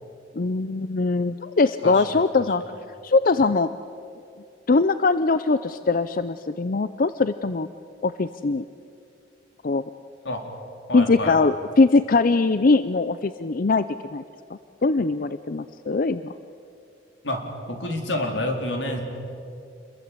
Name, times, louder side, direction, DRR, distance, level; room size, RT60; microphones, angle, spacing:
voice 1, 0.4-2.6 3.0-3.7 4.7-7.7 8.0-8.6 9.6-9.8 10.9-14.2 14.8-16.3, left 3 dB, 50° left, 13 dB, 0.6 m, -21 dB
voice 2, 1.8-2.8 10.2-10.4 10.9-11.4 17.2-19.0, left 1 dB, 85° left, 3 dB, 4.0 m, -29 dB
28.0 x 22.0 x 8.5 m, 2.5 s
head